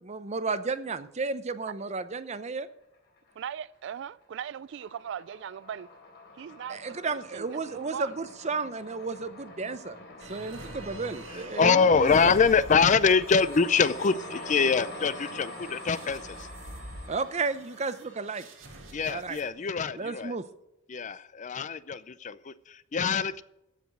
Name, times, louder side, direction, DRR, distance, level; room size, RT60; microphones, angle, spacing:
voice 1, 0.0-2.7 6.7-10.0 10.3-12.3 17.1-18.5 19.0-19.4 19.9-20.4, right 4 dB, 35° right, 0.7 m, -33 dB
sound 1, 2.9-3.7 4.0-19.2, left 2 dB, 60° left, 3.9 m, -45 dB
voice 2, 3.4-5.9 6.4-8.2, right 8 dB, 65° right, 0.3 m, -39 dB
sound 2, 10.2-19.5, right 2 dB, 85° right, 2.0 m, -46 dB
voice 3, 11.6-16.5 18.9-20.3 20.9-23.4, left 5 dB, 40° left, 0.5 m, -24 dB
15.0 x 5.1 x 7.8 m
head